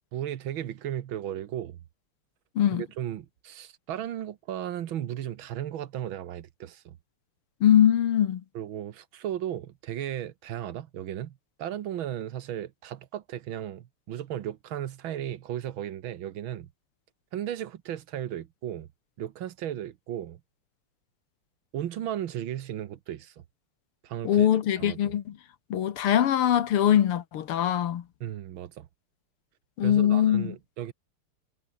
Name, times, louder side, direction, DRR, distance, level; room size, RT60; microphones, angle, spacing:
voice 1, 0.1-1.8 2.7-7.0 8.5-16.7 17.3-18.9 19.2-20.4 21.7-23.4 24.0-24.5 24.8-25.1 28.2-28.9 29.8-30.9, right 11 dB, 70° right, 1.7 m, -35 dB
voice 2, 7.6-8.4 24.2-25.3 25.7-28.0 29.8-30.6, left 10 dB, 80° left, 2.2 m, -22 dB
omnidirectional pair, 2.4 m